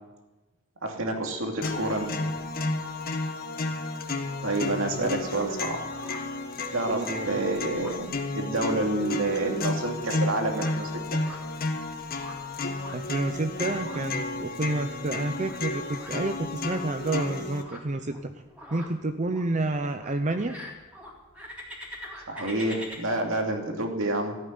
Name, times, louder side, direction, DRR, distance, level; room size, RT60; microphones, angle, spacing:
voice 1, 0.8-2.1 4.4-5.8 6.7-11.0 22.3-24.4, right 2 dB, 70° right, 2 dB, 2.6 m, -28 dB
sound 1, 1.6-17.6, left 2 dB, 45° left, 1.5 m, -32 dB
sound 2, 5.8-23.0, equal, 5° right, 3.6 m, -47 dB
voice 2, 6.9-7.4 12.9-18.3 18.7-20.5, right 2 dB, 35° right, 8 dB, 0.7 m, -29 dB
14.5 x 9.0 x 9.7 m, 1.1 s
head